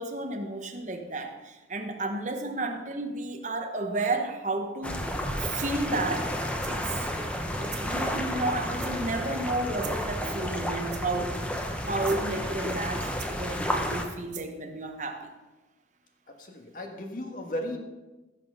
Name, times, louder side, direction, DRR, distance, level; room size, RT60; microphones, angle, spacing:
voice 1, 0.0-5.0 5.4-6.3 6.7-7.0 7.5-11.5 11.8-15.3, right 2 dB, 40° right, 4 dB, 1.2 m, -32 dB
sound 1, 4.8-14.0, equal, 5° left, 0.9 m, -31 dB
sound 2, 5.6-5.9 6.6-7.0 7.7-7.9 8.8-9.2 9.8-10.1 10.9-11.3 11.9-12.2 13.2-13.6 14.3-14.6, right 12 dB, 65° right, 0.9 m, -44 dB
voice 2, 16.3-17.8, left 1 dB, 45° left, 4 dB, 1.5 m, -35 dB
16.0 x 6.1 x 5.5 m, 1.1 s
head